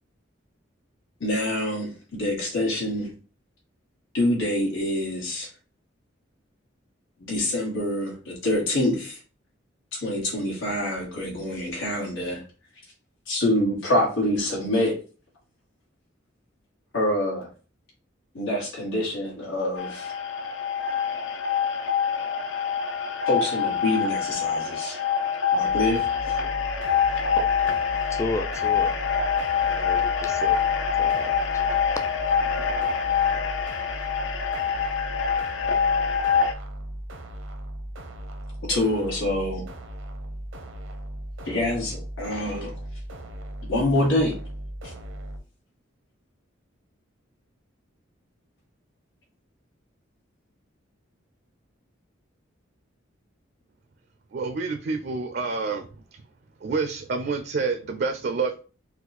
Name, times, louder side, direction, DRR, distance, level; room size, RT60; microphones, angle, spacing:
voice 1, 1.2-3.1 4.1-5.5 7.2-9.2 9.9-12.4 13.3-15.0 16.9-17.5 18.3-20.1 23.2-25.0 25.5-26.0 26.3-26.4 38.7-39.6 41.5-42.7 43.7-44.3 44.8-44.9, left 1 dB, 90° left, 1.8 m, -26 dB
sound 1, 19.8-36.5, left 7 dB, 65° left, 0.6 m, -25 dB
sound 2, 25.7-45.4, right 1 dB, 85° right, 0.8 m, -38 dB
voice 2, 28.1-29.0 29.7-30.6 31.0-31.6, left 2 dB, 15° left, 0.4 m, -33 dB
voice 3, 54.3-56.2 56.6-58.6, right 4 dB, 55° right, 0.4 m, -28 dB
4.2 x 2.4 x 4.1 m
head